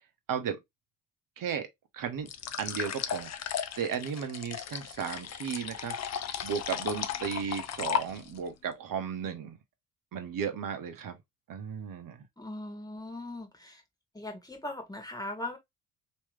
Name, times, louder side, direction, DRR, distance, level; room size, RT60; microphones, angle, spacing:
voice 1, 0.3-0.6 1.4-1.7 1.9-2.3 2.6-5.9 6.4-9.6 10.1-11.2 11.5-12.2, right 7 dB, 50° right, 1.1 m, -35 dB
sound 1, 2.3-8.5, left 9 dB, 40° left, 0.6 m, -35 dB
voice 2, 12.4-13.8 14.1-15.6, left 1 dB, 10° left, 1.7 m, -39 dB
3.1 x 3.1 x 3.3 m
hypercardioid pair, 50°, 43 cm